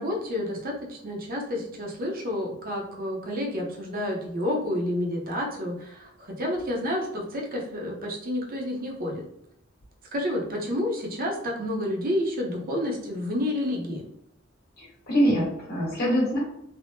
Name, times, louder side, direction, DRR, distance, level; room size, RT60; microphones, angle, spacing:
voice 1, 0.0-9.2 10.1-14.0, left 1 dB, 45° right, -1 dB, 0.6 m, -30 dB
voice 2, 14.8-16.4, equal, 50° left, -5 dB, 1.4 m, -24 dB
3.4 x 2.0 x 2.6 m, 0.75 s
head